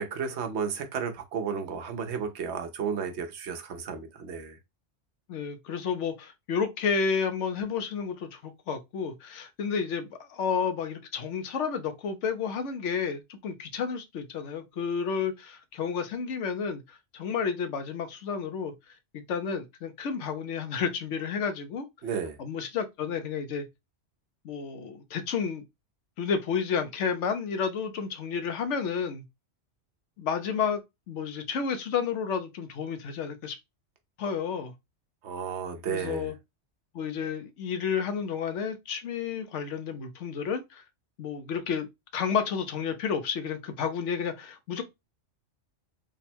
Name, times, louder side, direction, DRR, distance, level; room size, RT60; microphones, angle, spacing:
voice 1, 0.0-4.6 22.0-22.4 35.2-36.3, right 6 dB, 70° right, 1.0 m, -33 dB
voice 2, 5.3-18.7 19.1-21.9 22.4-23.6 24.4-25.6 26.2-29.2 30.2-30.8 31.1-33.6 34.2-34.7 35.9-36.3 36.9-40.8 41.2-41.9 42.1-44.8, left 6 dB, 90° left, 1.0 m, -31 dB
3.6 x 2.1 x 4.2 m
omnidirectional pair, 1.2 m